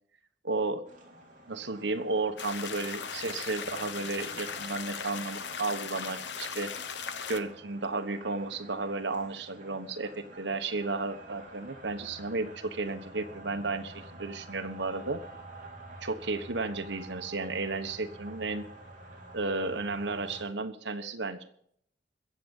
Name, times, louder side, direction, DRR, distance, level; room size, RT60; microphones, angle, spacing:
voice 1, 0.4-0.9 1.5-6.7 7.3-15.2 16.0-18.6 19.3-21.5, right 3 dB, 80° right, 9 dB, 1.2 m, -33 dB
sound 1, 0.8-20.4, right 2 dB, 45° right, 3.7 m, -49 dB
sound 2, 2.4-7.4, left 6 dB, 75° left, 1.0 m, -38 dB
22.5 x 7.8 x 5.4 m, 0.67 s
head